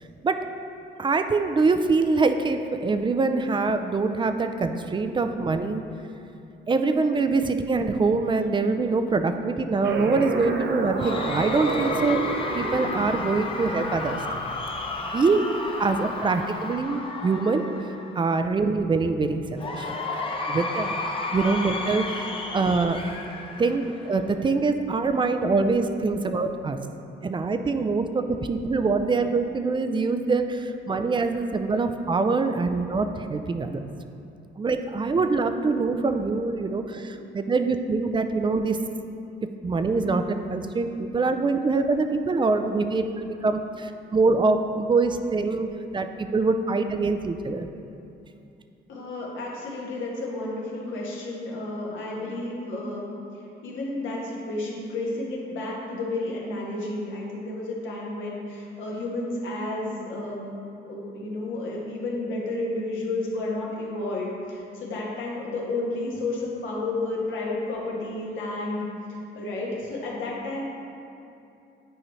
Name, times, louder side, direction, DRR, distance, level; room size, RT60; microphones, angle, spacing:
voice 1, 1.0-5.8 6.7-12.2 12.5-14.2 15.0-15.4 15.8-17.6 18.2-19.9 20.5-21.0 21.3-22.3 22.5-23.0 23.6-26.8 27.2-33.8 34.6-38.8 39.6-46.1 46.3-47.7, right 3 dB, 25° right, 7 dB, 0.4 m, -24 dB
sound 1, 9.8-15.2, right 4 dB, 60° right, 0.7 m, -31 dB
Cheering / Crowd, 11.0-18.3 19.6-24.3, left 3 dB, 25° left, 0.7 m, -32 dB
voice 2, 48.9-53.1 53.6-60.5 60.8-68.8 69.1-70.6, left 2 dB, 75° left, -4 dB, 1.5 m, -31 dB
8.9 x 4.8 x 3.2 m, 2.7 s
cardioid pair, 90°, 20 cm